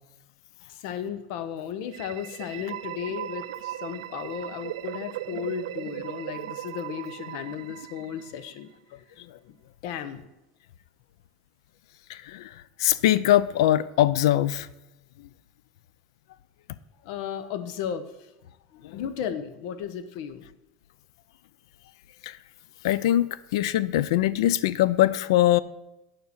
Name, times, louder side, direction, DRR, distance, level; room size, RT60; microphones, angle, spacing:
voice 1, 0.7-8.7 9.5-9.6 9.8-10.2 17.0-18.3 18.7-20.4, left 8 dB, 55° left, 12 dB, 0.8 m, -35 dB
sound 1, 1.9-8.7, right 14 dB, 90° right, 0.4 m, -38 dB
voice 2, 12.1-12.5 12.8-14.7 18.8-19.0 22.2-22.4 22.8-25.6, left 13 dB, 75° left, 18 dB, 0.4 m, -22 dB
9.6 x 5.8 x 6.6 m, 0.95 s
supercardioid pair, 170°, 3 cm